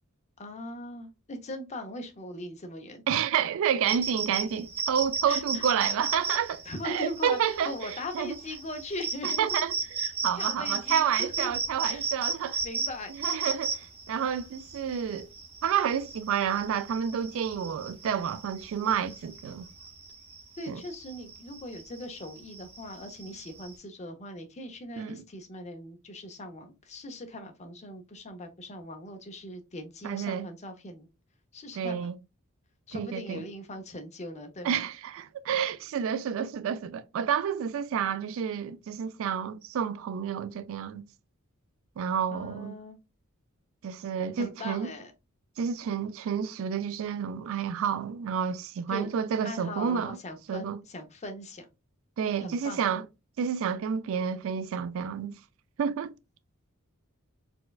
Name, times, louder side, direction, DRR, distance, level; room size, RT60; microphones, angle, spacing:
voice 1, 0.4-3.0 5.3-5.6 6.6-9.5 10.3-11.5 11.9-12.1 12.6-13.1 20.6-31.1 31.5-32.1 32.9-34.9 42.3-43.0 44.4-45.1 48.9-49.1 49.4-51.7 52.4-52.8, left 1 dB, 30° left, 0.6 m, -40 dB
voice 2, 3.1-7.7 8.1-8.3 9.2-9.7 10.2-12.6 13.2-15.3 15.6-19.7 20.7-20.8 25.0-25.2 30.0-30.5 31.7-32.2 32.9-33.4 34.6-41.0 42.0-42.8 43.8-44.9 45.6-50.2 50.5-50.8 52.2-53.0 53.4-55.3 55.8-56.1, right 8 dB, 65° right, 0.3 m, -29 dB
sound 1, 3.9-23.8, right 4 dB, 25° right, 0.7 m, -35 dB
4.2 x 2.2 x 2.3 m
head